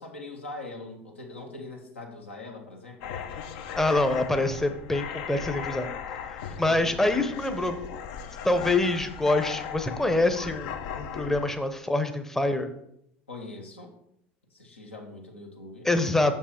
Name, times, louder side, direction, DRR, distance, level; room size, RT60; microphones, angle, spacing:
voice 1, 0.0-3.2 4.2-4.4 6.4-6.9 13.3-13.9 14.5-15.9, left 2 dB, 85° left, 1 dB, 1.3 m, -42 dB
sound 1, 3.0-11.4, left 8 dB, 60° left, 0.6 m, -37 dB
voice 2, 3.8-5.9 6.6-7.8 8.4-12.7 15.8-16.3, left 2 dB, 5° left, 8 dB, 0.7 m, -25 dB
6.5 x 5.4 x 4.4 m, 0.75 s
figure-of-eight pair, 75°, 7 cm